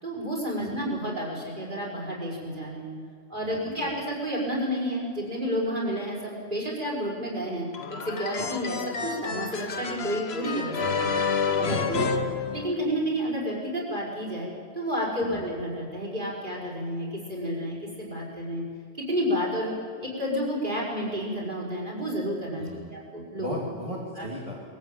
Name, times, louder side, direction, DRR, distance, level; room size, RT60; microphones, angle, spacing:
voice 1, 0.0-3.0 3.3-11.1 11.5-12.2 12.5-14.5 14.7-18.6 19.0-19.7 20.0-23.6 24.2-24.3, equal, 45° right, -2 dB, 5.8 m, -30 dB
voice 2, 3.4-3.9 8.3-8.5 11.6-12.0 15.2-15.5 22.6-23.0 23.4-24.5, equal, 30° right, -4 dB, 2.6 m, -38 dB
sound 1, 7.7-13.1, left 5 dB, 65° left, 1.4 m, -29 dB
22.0 x 14.5 x 9.2 m, 2.3 s
omnidirectional pair, 1.2 m